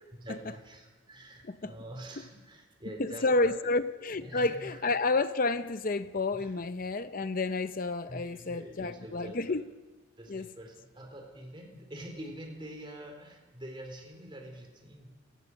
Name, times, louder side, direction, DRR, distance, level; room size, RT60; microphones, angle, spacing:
voice 1, 0.1-3.6 4.1-4.8 6.3-6.5 8.1-9.6 10.2-15.2, right 1 dB, 25° right, 4.2 m, -45 dB
voice 2, 3.0-9.6 10.3-10.5, left 3 dB, 45° left, 0.6 m, -30 dB
29.0 x 18.5 x 6.3 m
head